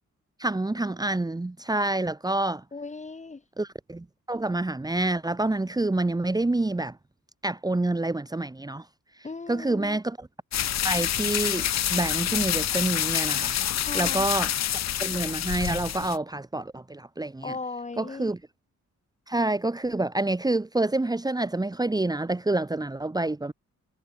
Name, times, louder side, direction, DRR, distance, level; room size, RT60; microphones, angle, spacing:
voice 1, 0.4-2.6 3.6-7.0 7.4-8.9 9.5-10.3 10.8-13.6 13.9-14.5 15.0-17.6 18.0-18.4 19.3-23.5, right 2 dB, 10° right, 1.6 m, -27 dB
voice 2, 2.7-3.4 9.2-10.0 13.8-14.3 17.4-18.3, left 3 dB, 20° left, 2.5 m, -37 dB
sound 1, 10.5-16.2, left 11 dB, 60° left, 0.7 m, -27 dB
wide cardioid pair, 155°, 31 cm